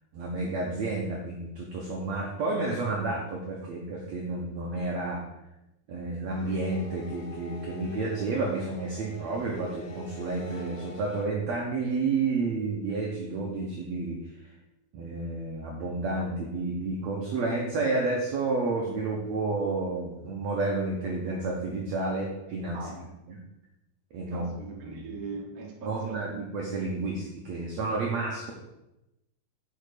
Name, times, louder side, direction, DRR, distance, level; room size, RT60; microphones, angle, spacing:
voice 1, 0.1-5.2 5.9-14.2 14.9-22.9 23.3-23.4 24.1-24.5 24.8-25.1 25.8-28.5, right 3 dB, 75° right, -1 dB, 1.6 m, -30 dB
sound 1, 6.3-11.2, left 3 dB, 75° left, 2.9 m, -45 dB
voice 2, 22.7-23.1 24.3-26.4, right 4 dB, 50° right, -2 dB, 1.0 m, -40 dB
8.8 x 4.6 x 5.0 m, 0.93 s
omnidirectional pair, 4.4 m